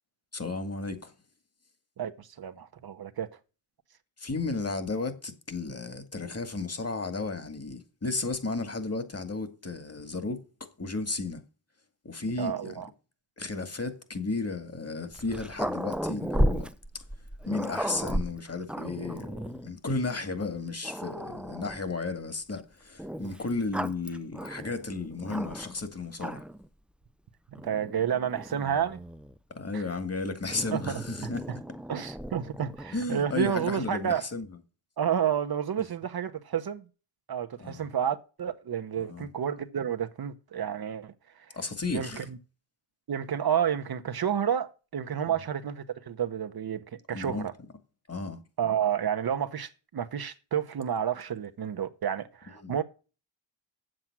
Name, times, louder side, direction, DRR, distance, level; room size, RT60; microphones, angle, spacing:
voice 1, 0.3-1.1 4.2-11.4 12.0-12.8 13.4-16.7 17.5-26.4 29.6-31.5 32.9-34.5 37.6-37.8 39.0-39.3 41.5-42.3 47.1-47.5 48.1-48.4 52.6-52.8, left 3 dB, 30° left, 2.2 m, -34 dB
voice 2, 2.0-3.3 12.4-12.9 27.6-29.0 29.7-29.8 30.7-31.0 31.9-34.2 35.0-36.8 37.3-41.1 41.9-42.4 43.1-47.5 48.6-52.8, right 8 dB, 50° right, 1.0 m, -30 dB
Growling, 15.1-19.7 20.4-20.5 20.8-21.9 23.0-25.8 26.1-26.7 27.6-29.4 30.5-33.0, equal, ahead, 0.6 m, -34 dB
7.8 x 7.7 x 6.0 m
supercardioid pair, 60°, 47 cm